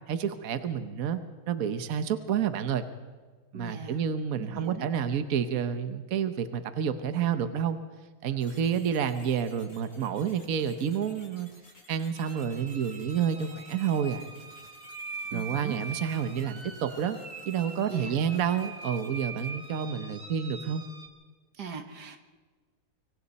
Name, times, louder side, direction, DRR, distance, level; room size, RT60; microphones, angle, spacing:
voice 1, 0.1-1.2 1.5-2.9 3.5-7.8 8.2-11.5 11.9-14.3 15.3-17.2 17.5-20.8, right 8 dB, 60° right, 10 dB, 1.4 m, -29 dB
voice 2, 3.5-4.0 4.4-4.9 15.3-15.8 17.9-18.1 21.6-22.2, right 6 dB, 90° right, 6 dB, 2.2 m, -39 dB
sound 1, 8.4-20.0, left 1 dB, 70° left, 5.8 m, -56 dB
sound 2, 12.2-21.1, right 3 dB, 35° right, 2.2 m, -43 dB
25.5 x 24.5 x 4.2 m, 1.4 s
omnidirectional pair, 1.7 m